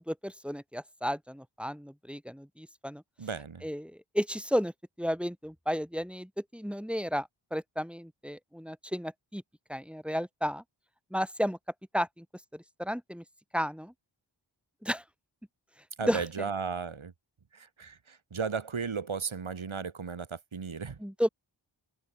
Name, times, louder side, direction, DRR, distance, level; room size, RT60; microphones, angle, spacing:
voice 1, 0.0-3.0 3.6-4.7 5.0-9.4 9.7-10.6 11.1-11.6 11.9-12.2 12.8-13.2 13.5-13.9 14.8-15.0 16.0-16.2 21.0-21.3, equal, ahead, 2.8 m, -33 dB
voice 2, 3.2-3.6 16.0-17.1 17.5-21.0, right 5 dB, 85° right, 3.7 m, -35 dB
wide cardioid pair, 70°, 47 cm